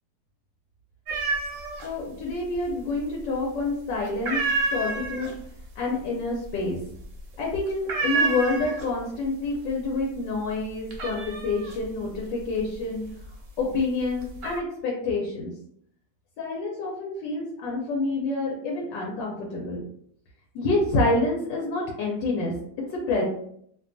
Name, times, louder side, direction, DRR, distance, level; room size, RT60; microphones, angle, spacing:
sound 1, 1.1-1.9 2.2-3.0 3.3-3.7 4.0-9.1 9.5-10.0 10.3-13.5 14.0-14.6, right 3 dB, 65° right, 0.8 m, -29 dB
voice 1, 1.8-4.4 4.7-5.3 5.8-6.8 7.4-13.0 13.6-15.5 16.4-19.9 20.5-22.5 22.9-23.2, left 3 dB, 85° left, -2 dB, 1.3 m, -27 dB
2.9 x 2.2 x 2.5 m, 0.66 s
omnidirectional pair, 1.9 m